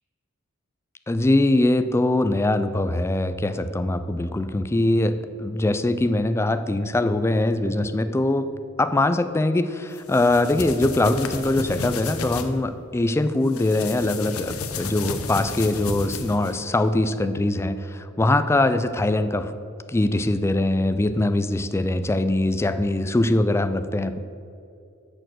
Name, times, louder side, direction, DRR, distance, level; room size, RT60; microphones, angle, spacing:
voice 1, 1.1-8.5 8.8-19.5 19.9-24.2, left 2 dB, 10° left, 11 dB, 0.3 m, -22 dB
sound 1, 10.0-12.5 13.5-16.6, left 4 dB, 90° left, 0.7 m, -32 dB
6.7 x 6.4 x 6.2 m, 2.6 s
head